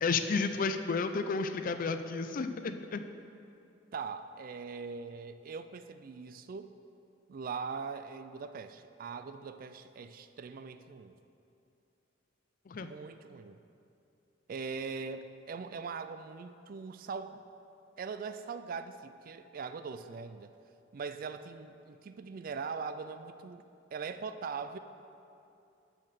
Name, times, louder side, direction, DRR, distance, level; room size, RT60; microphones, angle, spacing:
voice 1, 0.0-3.1 12.7-12.9, left 4 dB, 45° left, 9 dB, 0.4 m, -32 dB
voice 2, 3.9-6.7 7.3-11.2 12.8-13.6 14.5-17.4 18.0-20.5 20.9-23.6 23.9-24.8, right 5 dB, 50° right, 11 dB, 0.4 m, -41 dB
7.4 x 5.8 x 6.7 m, 2.7 s
head